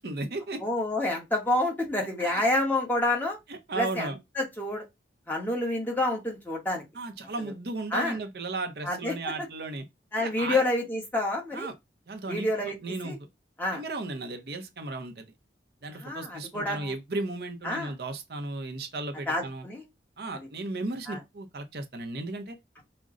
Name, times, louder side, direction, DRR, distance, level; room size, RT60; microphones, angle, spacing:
voice 1, 0.0-0.6 2.2-2.4 3.5-4.2 6.9-9.8 10.2-10.6 11.5-11.7 12.1-12.5 12.8-13.3 13.7-15.2 15.8-19.7 20.2-22.6, right 2 dB, 60° right, 0.7 m, -35 dB
voice 2, 0.6-3.4 3.7-4.8 5.3-6.8 7.9-8.2 8.8-9.1 10.1-11.7 12.3-12.8 13.0-13.2 13.6-13.8 16.0-16.9 17.6-17.9 19.3-19.8 21.1-21.2, left 1 dB, 10° left, 1.0 m, -28 dB
5.1 x 2.2 x 3.7 m
head